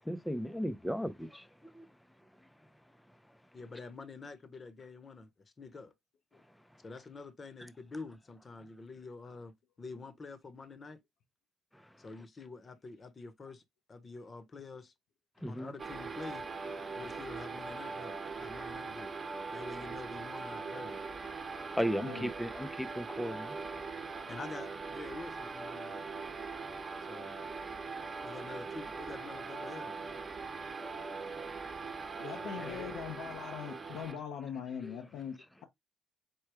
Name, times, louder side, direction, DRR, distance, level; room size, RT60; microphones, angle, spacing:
voice 1, 0.0-1.5 1.7-1.9 11.7-11.9 15.4-15.7 21.5-23.6 26.7-27.2 30.7-31.5 34.8-35.0, equal, 5° left, 0.5 m, -37 dB
voice 2, 3.5-5.3 5.6-5.9 6.8-11.0 12.0-13.6 13.9-14.9 15.4-16.5 16.9-19.1 19.5-21.0 21.9-22.3 24.3-26.0 27.1-27.3 28.2-29.9 32.4-32.9, left 3 dB, 35° left, 0.9 m, -47 dB
sound 1, 15.8-34.2, right 4 dB, 35° right, 1.0 m, -41 dB
voice 3, 32.2-35.6, left 8 dB, 85° left, 0.7 m, -42 dB
4.5 x 2.2 x 4.7 m
cardioid pair, 90°, 0 cm